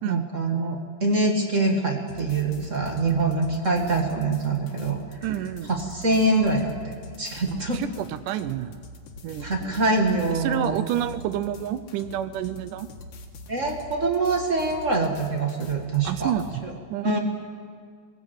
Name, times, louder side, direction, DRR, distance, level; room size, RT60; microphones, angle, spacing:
voice 1, 0.0-5.0 5.7-7.8 9.4-10.8 13.5-16.3 16.6-16.7 17.0-17.2, right 3 dB, 30° right, 2 dB, 1.4 m, -24 dB
sound 1, 2.1-16.5, left 2 dB, 80° left, 3.2 m, -44 dB
voice 2, 5.2-5.7 7.5-8.8 9.2-9.8 10.4-12.9 16.0-16.6 16.9-17.2, right 11 dB, 80° right, 13 dB, 2.2 m, -29 dB
20.0 x 16.0 x 8.1 m, 2.1 s
omnidirectional pair, 3.7 m